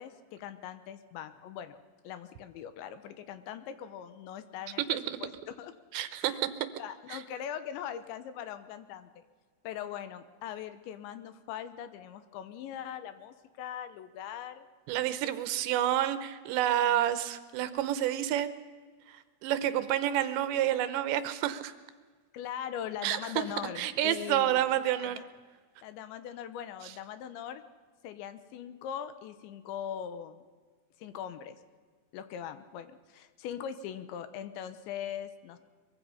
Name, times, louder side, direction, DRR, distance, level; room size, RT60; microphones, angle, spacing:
voice 1, 0.0-1.8 2.0-5.7 6.2-6.4 6.8-9.3 9.6-14.7 22.3-24.6 25.0-25.2 25.8-27.6 28.0-30.5 31.0-31.6 32.1-35.6, left 9 dB, 80° left, 11 dB, 3.2 m, -41 dB
voice 2, 5.9-6.5 14.9-18.5 19.1-21.7 23.0-23.4 23.8-25.2, right 12 dB, 75° right, 12 dB, 2.9 m, -29 dB
23.5 x 22.5 x 5.7 m, 1.5 s
omnidirectional pair, 5.5 m